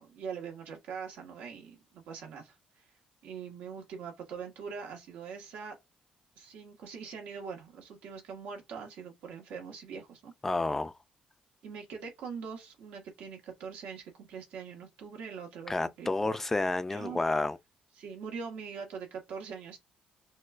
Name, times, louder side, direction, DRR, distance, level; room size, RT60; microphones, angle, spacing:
voice 1, 0.0-2.8 3.2-5.8 6.4-10.3 11.6-16.4 16.9-17.2 18.0-19.8, right 6 dB, 85° right, 1.3 m, -42 dB
voice 2, 10.4-11.0 15.7-17.6, left 2 dB, 15° left, 0.3 m, -30 dB
6.2 x 2.2 x 2.4 m
cardioid pair, 145°, 3 cm